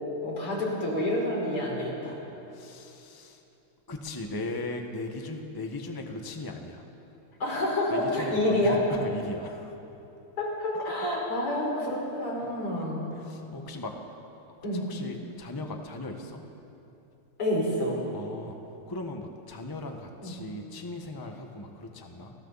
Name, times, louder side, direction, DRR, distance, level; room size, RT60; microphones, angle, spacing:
voice 1, 0.2-2.2 7.4-8.9 10.4-13.1 14.6-14.9 17.4-18.0 20.2-20.3, left 1 dB, 85° left, -3 dB, 5.9 m, -28 dB
voice 2, 2.5-3.4 3.9-6.9 7.9-9.8 10.7-11.2 12.4-12.5 12.8-14.0 14.7-16.4 18.1-18.6 18.9-22.3, left 2 dB, 10° left, 3 dB, 1.2 m, -38 dB
29.5 x 21.5 x 4.2 m, 2.9 s
omnidirectional pair, 2.4 m